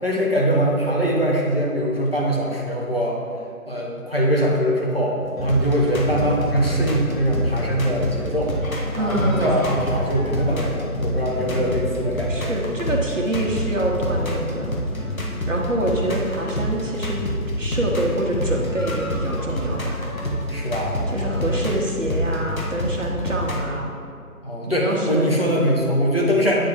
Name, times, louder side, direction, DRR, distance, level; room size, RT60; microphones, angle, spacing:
voice 1, 0.0-3.2 3.7-5.1 5.4-8.5 9.0-12.6 20.5-21.6 24.4-26.6, equal, 40° left, -4 dB, 0.9 m, -22 dB
sound 1, 5.2-23.7, equal, 65° left, 1.1 m, -27 dB
voice 2, 9.0-9.7 11.4-11.8 12.3-14.7 15.5-17.3 17.6-20.0 21.1-23.9 24.6-25.3, right 1 dB, 55° right, -2 dB, 1.1 m, -26 dB
8.7 x 3.6 x 3.6 m, 2.2 s
figure-of-eight pair, 175°, 45 cm